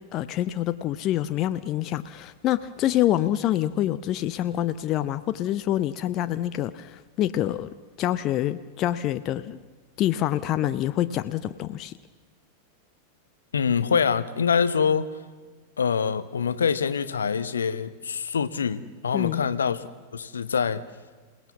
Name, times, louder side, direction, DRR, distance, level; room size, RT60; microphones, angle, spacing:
voice 1, 0.1-7.7 8.0-9.6 10.0-11.9 19.1-19.5, left 13 dB, 35° left, 12 dB, 0.7 m, -26 dB
voice 2, 13.5-15.1 15.8-19.9 20.1-20.8, left 6 dB, 70° left, 13 dB, 1.1 m, -25 dB
27.5 x 18.5 x 7.1 m, 1.4 s
figure-of-eight pair, 90°, 0 cm